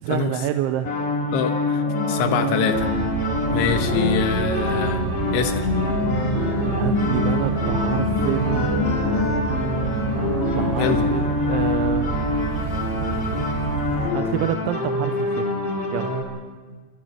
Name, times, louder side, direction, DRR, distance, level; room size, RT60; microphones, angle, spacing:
voice 1, 0.0-0.9 6.7-8.9 10.5-12.2 14.1-15.5 15.9-16.2, right 12 dB, 85° right, 7 dB, 3.2 m, -27 dB
sound 1, 0.8-16.2, left 2 dB, 40° left, 2.5 m, -26 dB
voice 2, 1.3-1.8 2.1-2.9 3.5-5.0 5.3-5.7 10.7-11.0, left 7 dB, 80° left, 7 dB, 3.8 m, -24 dB
sound 2, 1.8-11.2, left 2 dB, 45° right, 7.9 m, -27 dB
sound 3, 2.7-14.1, right 7 dB, 65° right, 2.3 m, -29 dB
27.0 x 22.5 x 4.5 m, 1.4 s
omnidirectional pair, 5.3 m